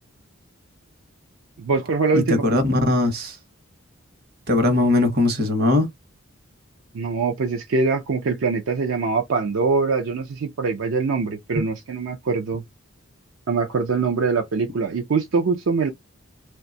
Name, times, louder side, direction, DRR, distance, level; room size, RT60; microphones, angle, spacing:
voice 1, 1.6-2.4 6.9-12.6 13.5-15.9, right 4 dB, 70° right, 0.5 m, -23 dB
voice 2, 2.1-3.4 4.5-5.9, left 2 dB, 45° right, 0.9 m, -20 dB
2.6 x 2.2 x 3.8 m
head